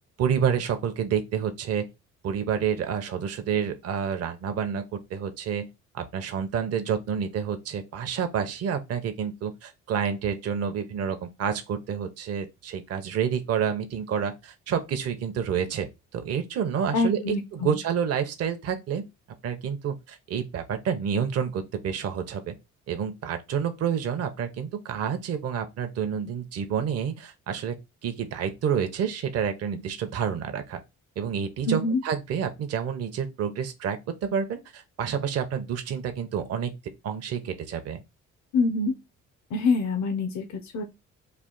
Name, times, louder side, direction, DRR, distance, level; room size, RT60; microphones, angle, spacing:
voice 1, 0.2-1.9 2.2-5.7 5.9-19.1 19.4-22.5 22.9-27.8 28.0-30.8 31.2-36.7 37.0-38.0, right 7 dB, 55° right, 0.6 m, -29 dB
voice 2, 16.9-17.8 31.7-32.0 38.5-38.9 39.5-40.8, left 3 dB, 65° left, 0.7 m, -25 dB
3.3 x 2.4 x 3.7 m
cardioid pair, 90°, 30 cm